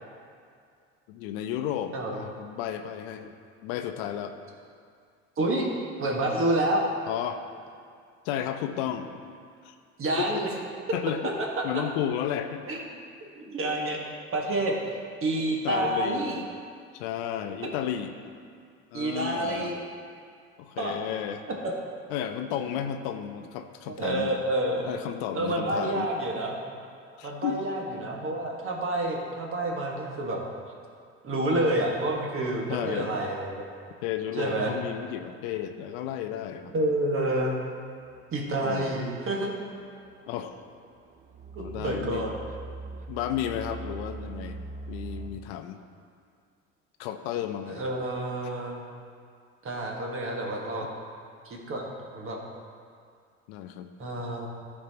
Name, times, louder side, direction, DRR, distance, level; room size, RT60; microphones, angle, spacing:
voice 1, 1.1-3.3 3.6-4.4 7.1-7.4 8.2-9.1 9.6-9.7 10.2-10.5 10.9-11.3 11.6-12.6 15.6-16.5 16.9-18.1 18.9-19.8 20.6-21.4 22.1-24.3 24.8-26.1 27.2-27.6 32.7-33.1 34.0-36.7 38.6-39.0 40.3-40.6 41.6-42.3 43.1-44.6 44.9-45.8 47.0-47.8 50.8-50.9 53.5-53.9, left 10 dB, 80° left, 8 dB, 0.6 m, -33 dB
voice 2, 5.4-5.7 6.0-6.8 10.0-10.5 12.7-12.8 13.3-14.0 14.3-14.7 15.2-16.4 18.9-19.8 20.8-21.0 24.0-24.9 25.3-26.6 27.2-30.4 31.2-33.7 34.4-34.8 36.7-37.6 38.3-39.5 41.5-42.3 47.7-48.8 49.6-51.0 51.4-51.8 52.1-52.4 54.0-54.5, right 1 dB, 40° right, -1 dB, 1.5 m, -28 dB
sound 1, 38.0-45.3, right 3 dB, 25° right, 0.6 m, -42 dB
12.0 x 4.4 x 2.9 m, 2.3 s
supercardioid pair, 80°, 32 cm